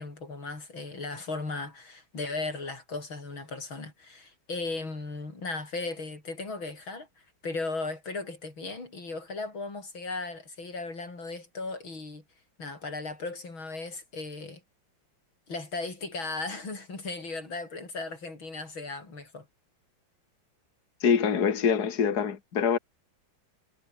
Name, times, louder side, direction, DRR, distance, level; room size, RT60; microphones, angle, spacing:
voice 1, 0.0-7.1 7.4-12.2 12.6-14.6 15.5-19.5, left 3 dB, 85° left, 6.5 m, -36 dB
voice 2, 21.0-22.8, left 7 dB, 55° left, 2.4 m, -24 dB
omnidirectional pair, 2.1 m